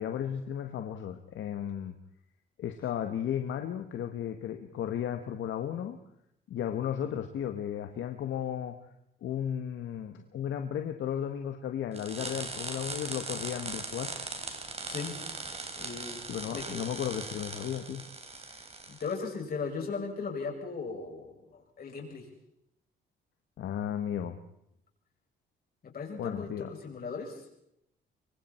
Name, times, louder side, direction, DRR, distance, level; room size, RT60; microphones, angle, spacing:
voice 1, 0.0-2.0 2.6-6.0 6.5-8.8 9.2-14.1 16.3-18.0 23.6-24.4 26.2-26.7, left 9 dB, 75° left, 7 dB, 1.5 m, -34 dB
sound 1, 11.9-19.2, right 3 dB, 30° right, 3.8 m, -39 dB
voice 2, 14.9-15.2 15.8-16.8 18.5-22.3 25.8-27.5, left 4 dB, 50° left, 0 dB, 7.0 m, -38 dB
24.5 x 24.0 x 4.5 m, 0.78 s
cardioid pair, 90°, 20 cm